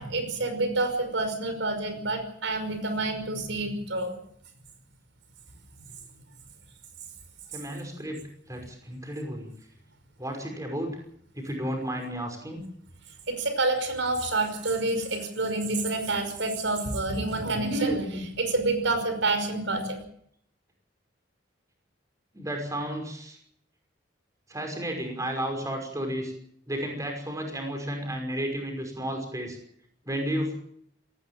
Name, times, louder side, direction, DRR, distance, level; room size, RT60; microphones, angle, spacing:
voice 1, 0.0-4.1 13.3-20.0, right 2 dB, 80° right, 8 dB, 5.5 m, -28 dB
voice 2, 7.5-8.2 8.5-9.5 10.2-10.9 11.3-12.6 22.3-23.4 24.5-26.3 26.7-29.6 30.1-30.5, right 1 dB, 20° right, 3 dB, 5.6 m, -32 dB
19.0 x 17.0 x 8.9 m, 0.68 s
head